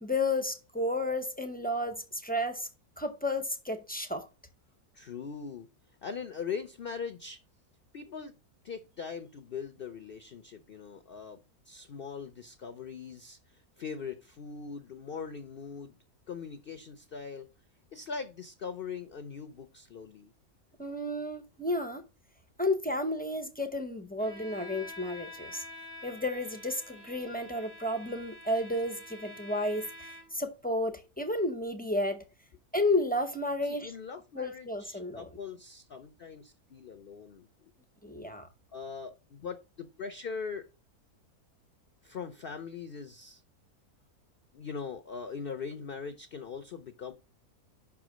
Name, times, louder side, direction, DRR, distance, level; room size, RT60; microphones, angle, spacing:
voice 1, 0.0-2.7 3.0-4.3 20.8-22.0 22.6-25.6 26.0-32.2 32.7-33.9 34.3-35.3 38.0-38.5, left 1 dB, 10° left, 0.5 m, -32 dB
voice 2, 4.9-5.7 6.0-7.4 7.9-8.3 8.6-11.4 11.7-16.0 16.3-17.5 17.9-20.3 33.7-37.5 38.7-40.6 42.0-43.4 44.5-47.1, left 5 dB, 50° left, 0.7 m, -41 dB
Bowed string instrument, 24.2-30.5, left 1 dB, 65° right, 2.4 m, -48 dB
5.7 x 4.8 x 6.1 m
omnidirectional pair, 1.6 m